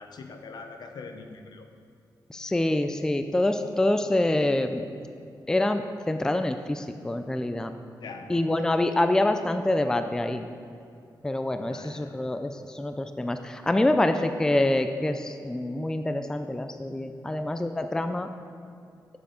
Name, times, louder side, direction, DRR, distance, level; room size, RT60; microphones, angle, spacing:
voice 1, 0.0-1.7 8.0-8.5 11.6-12.2, left 4 dB, 70° left, 5 dB, 0.8 m, -42 dB
voice 2, 2.3-4.9 5.5-7.7 8.3-10.5 11.2-18.3, left 1 dB, 10° left, 8 dB, 0.3 m, -26 dB
7.9 x 6.9 x 5.0 m, 2.5 s
wide cardioid pair, 135°, 7 cm